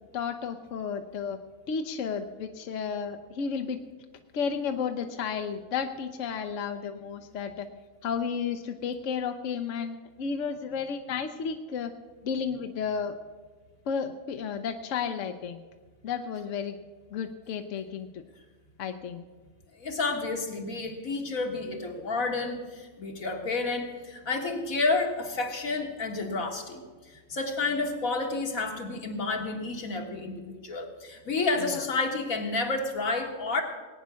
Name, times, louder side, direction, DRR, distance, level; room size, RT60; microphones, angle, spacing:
voice 1, 0.1-1.4 1.7-3.8 4.3-7.7 8.0-11.9 12.2-13.2 13.9-15.6 16.0-16.8 17.1-18.2 18.8-19.2 31.6-31.8, left 6 dB, 70° left, 7 dB, 1.0 m, -32 dB
voice 2, 19.8-33.6, left 3 dB, 85° left, 2 dB, 2.2 m, -30 dB
18.5 x 9.4 x 6.2 m, 1.4 s
omnidirectional pair, 1.4 m